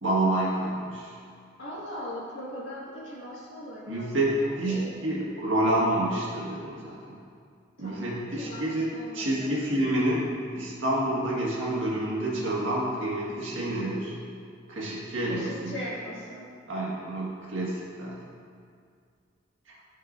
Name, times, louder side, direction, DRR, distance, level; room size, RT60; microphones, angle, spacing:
voice 1, 0.0-1.1 3.9-7.2 7.8-8.9 9.1-14.1 14.7-15.8 16.7-18.2, right 1 dB, 70° right, -6 dB, 1.8 m, -28 dB
voice 2, 1.6-4.2 4.4-5.3 7.8-9.7 15.3-16.5, equal, 65° left, -5 dB, 1.8 m, -40 dB
13.5 x 4.6 x 2.6 m, 2.2 s
head